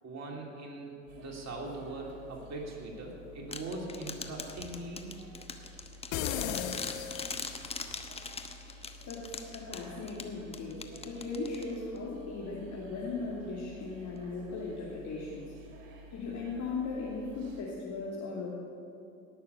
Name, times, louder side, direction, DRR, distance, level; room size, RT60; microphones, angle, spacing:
voice 1, 0.0-5.1 6.4-6.9, right 2 dB, 40° right, -1 dB, 3.2 m, -41 dB
sound 1, 1.1-17.6, equal, 70° right, 2.4 m, -52 dB
sound 2, 3.5-12.0, left 4 dB, 15° left, 1.0 m, -42 dB
sound 3, 6.1-7.9, left 10 dB, 65° left, 0.9 m, -36 dB
voice 2, 9.1-15.5 16.1-18.5, left 3 dB, 45° left, -6 dB, 2.7 m, -38 dB
18.5 x 6.7 x 7.0 m, 2.6 s
hypercardioid pair, 70°, 41 cm